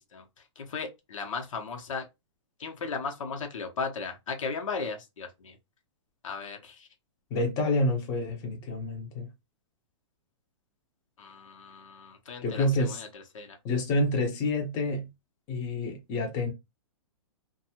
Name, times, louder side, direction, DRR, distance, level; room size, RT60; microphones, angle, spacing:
voice 1, 0.6-2.0 2.6-5.5 6.2-6.9 11.2-13.6, left 4 dB, 85° left, 0.9 m, -36 dB
voice 2, 7.3-9.3 12.4-13.0 13.6-15.1 15.5-16.5, left 2 dB, 25° left, 0.7 m, -28 dB
2.6 x 2.3 x 2.8 m
hypercardioid pair, 150°, 16 cm